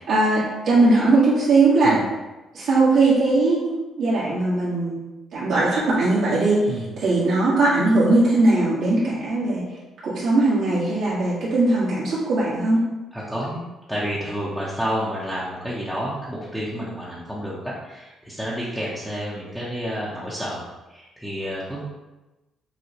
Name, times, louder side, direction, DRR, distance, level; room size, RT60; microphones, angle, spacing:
voice 1, 0.1-2.0 2.5-4.9 5.3-6.7 7.0-9.6 10.0-12.9, right 2 dB, 75° right, -10 dB, 1.4 m, -19 dB
voice 2, 13.1-13.5 13.9-20.6 20.9-21.9, equal, ahead, -8 dB, 0.8 m, -30 dB
6.4 x 2.3 x 2.9 m, 1.1 s
cardioid pair, 110°, 0 cm